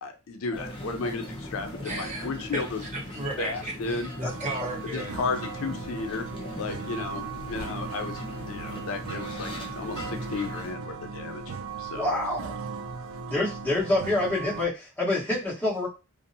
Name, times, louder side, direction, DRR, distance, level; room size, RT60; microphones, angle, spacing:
voice 1, 0.0-2.8 3.4-4.1 4.9-6.3 6.6-7.2 7.5-11.4 11.8-12.1, left 4 dB, 85° left, 6 dB, 0.5 m, -33 dB
sound 1, 0.5-10.7, left 1 dB, 25° left, 0.7 m, -39 dB
voice 2, 1.8-5.1, right 2 dB, 35° right, -1 dB, 0.8 m, -35 dB
sound 2, 4.2-14.7, right 5 dB, 70° right, 0.3 m, -38 dB
voice 3, 11.9-12.5 13.3-15.9, left 2 dB, 10° left, -8 dB, 1.2 m, -26 dB
2.6 x 2.0 x 2.6 m, 0.30 s
head